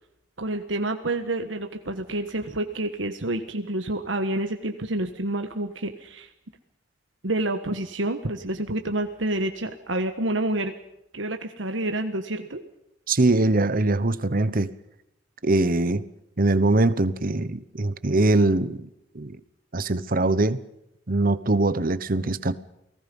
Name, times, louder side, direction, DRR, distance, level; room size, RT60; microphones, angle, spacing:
voice 1, 0.4-6.3 7.2-10.7 11.1-12.6, right 1 dB, 85° right, 6 dB, 1.5 m, -28 dB
voice 2, 13.1-14.7 15.4-16.1 16.4-18.9 19.1-19.4 19.7-20.6 21.1-22.6, right 2 dB, 50° right, 15 dB, 1.1 m, -22 dB
29.0 x 19.0 x 5.4 m, 0.82 s
head